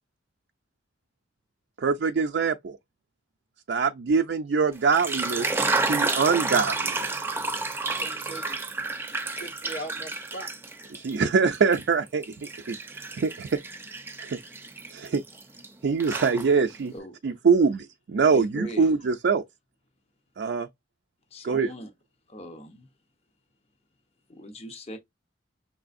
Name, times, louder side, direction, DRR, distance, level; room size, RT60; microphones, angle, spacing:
voice 1, 1.8-2.8 3.7-5.5 5.8-7.2 10.9-12.8 13.1-13.6 14.2-14.4 14.9-15.2 15.8-16.9 17.2-19.4 20.4-20.7 21.4-21.7, right 5 dB, 70° right, 0.4 m, -24 dB
sound 1, 4.8-11.2 11.5-15.7 16.0-16.8, right 3 dB, 15° right, 0.6 m, -30 dB
voice 2, 8.0-8.7 9.0-10.5, right 1 dB, 75° left, 2.1 m, -40 dB
voice 3, 18.3-19.1 21.3-21.9 22.3-22.9 24.3-25.0, equal, 35° left, 0.8 m, -41 dB
6.1 x 3.2 x 2.5 m
head